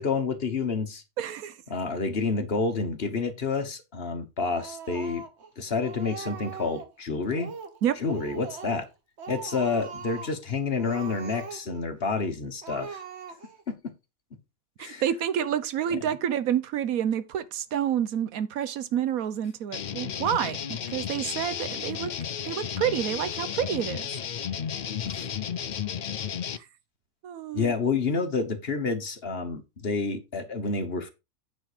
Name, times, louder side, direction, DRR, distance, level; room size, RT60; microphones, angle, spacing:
voice 1, 0.0-1.0 1.7-5.2 5.6-7.5 8.0-8.9 9.3-13.0 13.7-13.8 14.8-15.0 15.9-16.0 25.1-25.3 27.5-31.1, left 4 dB, 45° left, 1.4 m, -29 dB
voice 2, 1.2-1.6 7.8-8.0 14.8-22.1 22.4-24.1 26.6-26.7 27.2-27.7, right 9 dB, 80° right, 1.2 m, -29 dB
Speech, 4.6-5.5 5.8-6.9 7.3-7.8 8.1-8.9 9.2-10.4 10.8-11.8 12.2-12.3 12.6-13.6, right 6 dB, 50° right, 1.4 m, -41 dB
sound 1, 19.7-26.6, left 8 dB, 70° left, 0.4 m, -33 dB
9.2 x 4.5 x 5.0 m
omnidirectional pair, 1.5 m